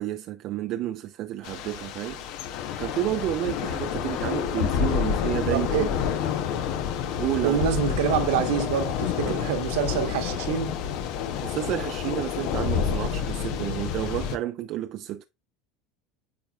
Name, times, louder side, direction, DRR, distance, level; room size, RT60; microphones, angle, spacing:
voice 1, 0.0-2.2 2.8-5.9 7.2-7.6 9.2-9.3 11.4-15.2, right 13 dB, 55° right, 0.5 m, -30 dB
Thunder / Rain, 1.4-14.4, left 8 dB, 65° left, 0.9 m, -29 dB
voice 2, 5.5-6.0 7.4-10.8, right 8 dB, 80° right, 1.4 m, -26 dB
8.9 x 4.6 x 2.4 m
hypercardioid pair, 90°, 0 cm